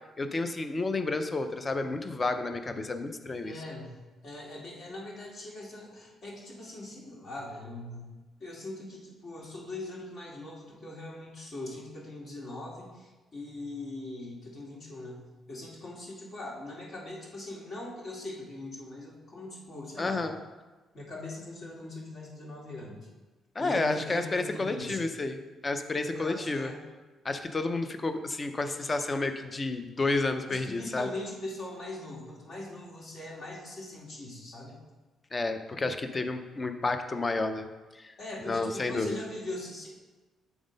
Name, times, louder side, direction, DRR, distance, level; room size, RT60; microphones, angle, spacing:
voice 1, 0.2-3.5 20.0-20.4 23.5-26.7 27.2-31.1 35.3-37.7 37.9-38.1 38.5-39.2, left 3 dB, 30° left, 8 dB, 0.6 m, -31 dB
voice 2, 3.4-8.1 8.4-20.2 20.9-23.0 23.6-25.0 26.1-26.8 30.5-34.8 38.2-39.9, left 2 dB, 55° left, -4 dB, 2.2 m, -41 dB
7.0 x 3.7 x 5.2 m, 1.2 s
cardioid pair, 90°, 0 cm